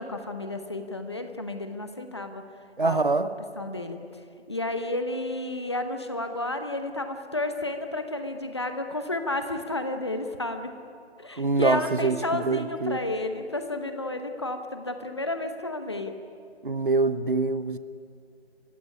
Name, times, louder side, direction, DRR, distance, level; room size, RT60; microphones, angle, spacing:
voice 1, 0.0-2.4 2.8-3.1 3.6-4.0 4.5-10.7 11.2-16.2, left 2 dB, 25° left, 1.0 m, -31 dB
voice 2, 2.8-3.3 11.4-13.0 16.6-17.8, right 3 dB, 50° right, 1.0 m, -25 dB
28.5 x 16.0 x 9.8 m
figure-of-eight pair, 165°, 34 cm